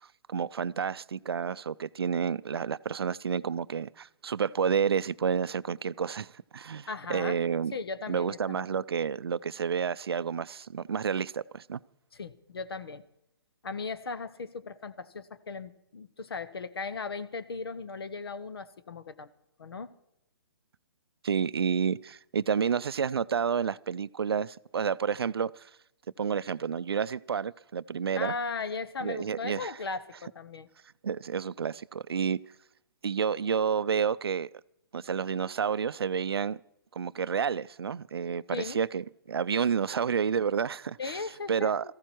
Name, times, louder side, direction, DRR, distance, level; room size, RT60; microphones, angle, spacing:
voice 1, 0.3-7.7 8.1-11.8 21.2-25.5 26.2-28.3 29.0-29.7 31.0-32.4 33.0-34.5 34.9-36.6 36.9-41.2 41.5-41.9, right 7 dB, 80° right, 0.5 m, -30 dB
voice 2, 6.9-7.4 7.7-8.7 12.1-13.0 13.6-19.3 19.6-19.9 28.1-30.7 38.5-38.8 41.0-41.7, left 4 dB, 75° left, 1.1 m, -37 dB
17.5 x 15.0 x 4.5 m
hypercardioid pair, 140°, 13 cm